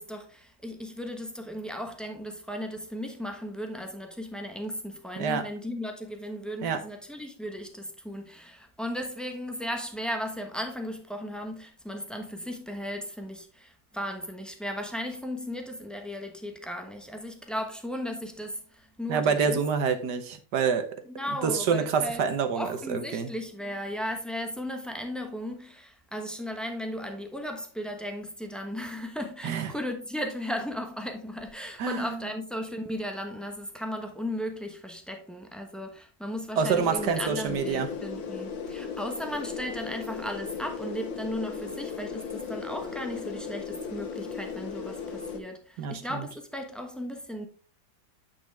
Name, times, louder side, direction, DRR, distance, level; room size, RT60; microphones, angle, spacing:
voice 1, 0.0-19.6 21.1-22.2 22.6-47.5, equal, ahead, 0.4 m, -36 dB
voice 2, 19.1-20.9 21.4-23.3 29.4-29.7 31.8-32.2 36.6-37.9 45.8-46.3, right 6 dB, 65° right, 1.4 m, -27 dB
sound 1, 36.6-45.4, left 6 dB, 70° left, 1.8 m, -36 dB
9.1 x 5.4 x 3.4 m
omnidirectional pair, 2.1 m